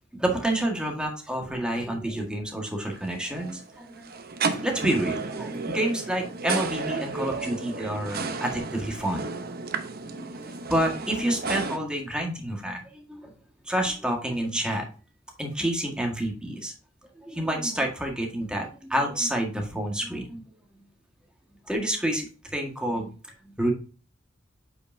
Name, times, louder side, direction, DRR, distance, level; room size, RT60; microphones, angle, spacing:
voice 1, 0.1-4.1 4.6-9.2 10.0-13.3 13.7-14.9 15.4-16.7 17.2-20.5 21.7-22.3 22.5-23.2 23.6-23.7, right 1 dB, 5° right, 1 dB, 1.7 m, -29 dB
sound 1, 2.9-11.8, right 4 dB, 50° right, 0.9 m, -33 dB
7.9 x 5.6 x 2.7 m, 0.37 s
head